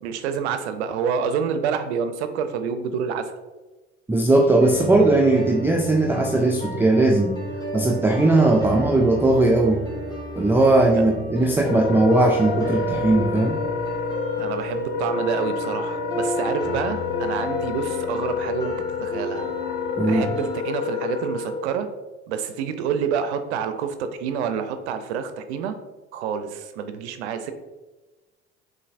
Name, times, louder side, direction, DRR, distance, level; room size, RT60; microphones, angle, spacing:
voice 1, 0.0-3.3 14.4-19.4 20.1-21.9 22.3-25.8 26.1-27.5, right 7 dB, 70° right, 9 dB, 0.5 m, -28 dB
voice 2, 4.1-7.3 7.7-9.8 10.4-13.6 20.0-20.3, right 2 dB, 5° right, 1 dB, 0.3 m, -18 dB
sound 1, 4.6-20.6, equal, 10° left, 1.4 m, -33 dB
Wind instrument woodwind instrument, 11.6-21.7, left 6 dB, 75° left, 0.6 m, -29 dB
6.8 x 2.5 x 2.5 m, 1.2 s
hypercardioid pair, 65°, 34 cm